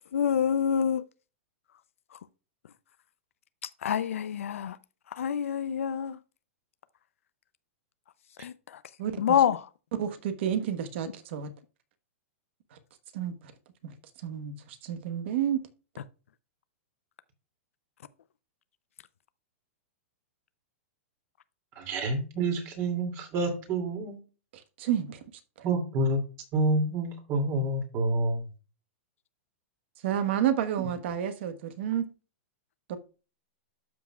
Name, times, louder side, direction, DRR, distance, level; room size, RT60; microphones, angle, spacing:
voice 1, 0.1-1.0 3.8-4.7 5.2-6.2 8.4-8.5 9.2-9.6, left 8 dB, 90° left, 0.5 m, -26 dB
voice 2, 9.0-9.4 10.0-11.5 13.1-13.4 13.8-13.9 14.2-15.6 24.8-25.2 30.0-32.1 32.9-33.0, right 9 dB, 60° right, 1.2 m, -30 dB
voice 3, 21.8-24.2 25.6-26.2 26.5-28.4, right 2 dB, 35° right, 2.5 m, -28 dB
12.0 x 6.0 x 2.3 m
hypercardioid pair, 145°, 7 cm